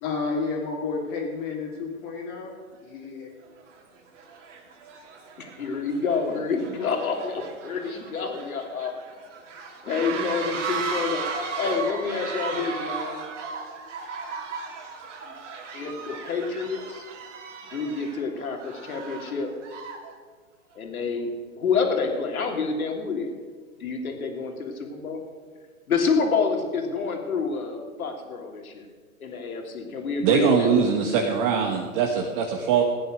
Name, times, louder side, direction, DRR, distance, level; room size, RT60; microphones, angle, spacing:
voice 1, 0.0-2.5 2.8-3.3, left 4 dB, 35° left, -4 dB, 2.5 m, -31 dB
sound 1, 2.8-2.9 3.6-3.8 4.1-20.1, right 5 dB, 55° right, 3.0 m, -36 dB
voice 2, 5.4-8.9 9.8-11.2 11.6-13.2 15.7-17.0 17.7-19.5 20.7-21.3 21.6-23.3 23.8-25.2 25.9-28.9 29.2-30.7, left 5 dB, 75° left, 2 dB, 3.1 m, -28 dB
voice 3, 30.2-32.8, right 6 dB, 40° right, 2 dB, 1.5 m, -22 dB
16.0 x 9.4 x 6.3 m, 1.5 s
hypercardioid pair, 130°, 43 cm